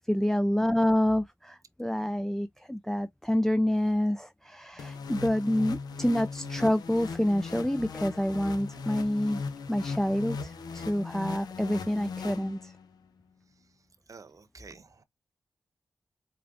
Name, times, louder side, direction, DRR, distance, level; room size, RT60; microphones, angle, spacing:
voice 1, 0.1-9.4 9.7-12.7, left 1 dB, 5° left, 0.3 m, -27 dB
sound 1, 4.8-13.0, left 4 dB, 85° left, 0.6 m, -38 dB
voice 2, 13.5-15.0, right 5 dB, 55° right, 0.7 m, -52 dB
4.7 x 2.4 x 2.5 m
cardioid pair, 45°, 7 cm